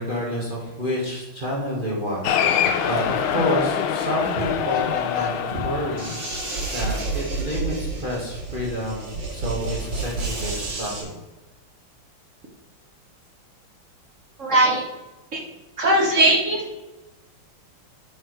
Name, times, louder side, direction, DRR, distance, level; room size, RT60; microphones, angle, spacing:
voice 1, 0.0-11.1, equal, 25° right, -5 dB, 1.6 m, -29 dB
Cheering, 2.2-7.0, left 8 dB, 85° left, 1.5 m, -25 dB
sound 1, 6.0-11.0, right 3 dB, 60° right, 2.7 m, -30 dB
voice 2, 14.4-14.8 15.3-15.4 15.8-16.8, right 1 dB, 45° right, 0 dB, 1.2 m, -19 dB
9.5 x 4.7 x 4.7 m, 1.1 s
omnidirectional pair, 2.3 m